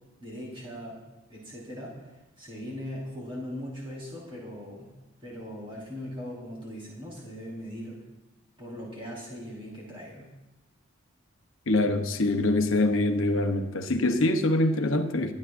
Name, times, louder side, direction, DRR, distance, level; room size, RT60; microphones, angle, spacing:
voice 1, 0.2-1.0 1.3-1.9 2.4-4.9 5.2-8.0 8.6-10.3, equal, 25° right, -5 dB, 4.2 m, -39 dB
voice 2, 11.7-15.3, left 2 dB, 75° left, 6 dB, 0.9 m, -24 dB
23.5 x 9.7 x 2.6 m, 1.1 s
head